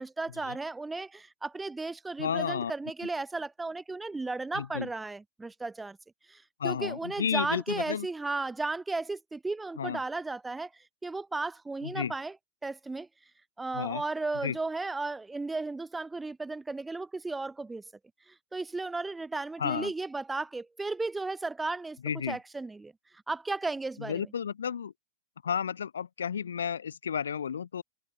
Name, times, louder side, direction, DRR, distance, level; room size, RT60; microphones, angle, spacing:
voice 1, 0.0-6.0 6.3-12.4 12.6-13.1 13.6-17.8 18.3-22.0 22.3-22.9 23.3-24.3, right 3 dB, 10° right, 0.8 m, -35 dB
voice 2, 2.2-2.7 4.5-4.9 6.6-8.1 9.8-10.0 11.8-12.1 13.7-14.0 14.4-14.6 19.6-19.9 22.0-22.4 24.0-24.9 25.4-27.8, left 7 dB, 80° left, 0.4 m, -32 dB
hypercardioid pair, 100°, 0 cm